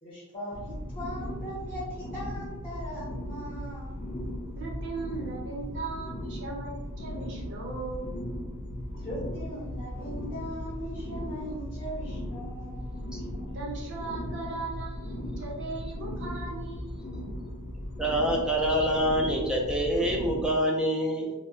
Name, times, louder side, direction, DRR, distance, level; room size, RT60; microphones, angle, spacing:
voice 1, 0.0-4.0 9.0-13.0, equal, 25° left, -9 dB, 0.8 m, -39 dB
sound 1, 0.5-20.5, equal, 50° left, 0.5 m, -37 dB
voice 2, 4.6-8.1 13.4-17.1, right 3 dB, 55° right, -3 dB, 0.7 m, -38 dB
voice 3, 18.0-21.3, equal, 5° right, -1 dB, 0.4 m, -26 dB
2.1 x 2.1 x 3.6 m, 1.1 s
head